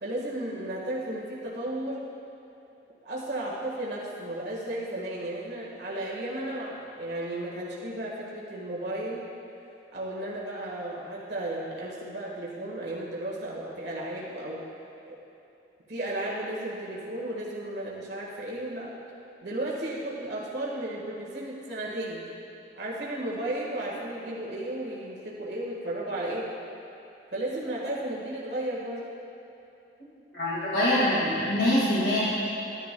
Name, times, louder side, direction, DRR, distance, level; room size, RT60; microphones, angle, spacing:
voice 1, 0.0-2.1 3.0-9.2 9.9-14.6 15.1-15.2 15.9-18.9 19.4-22.2 22.8-26.5 27.3-29.1, right 1 dB, 70° right, -5 dB, 1.6 m, -34 dB
voice 2, 30.3-32.2, left 1 dB, 80° left, -8 dB, 2.0 m, -24 dB
12.5 x 10.5 x 2.3 m, 2.8 s
head